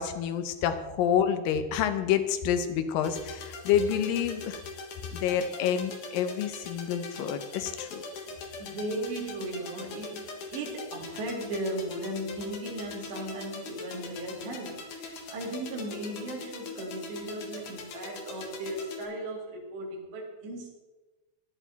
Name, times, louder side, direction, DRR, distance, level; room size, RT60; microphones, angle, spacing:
voice 1, 0.0-4.6 5.1-8.0, left 8 dB, 75° left, 8 dB, 2.1 m, -28 dB
sound 1, 3.0-19.0, left 4 dB, 55° left, 2.5 m, -42 dB
voice 2, 8.3-20.7, right 1 dB, 70° right, 0 dB, 4.5 m, -37 dB
16.0 x 11.5 x 4.1 m, 1.2 s
omnidirectional pair, 5.2 m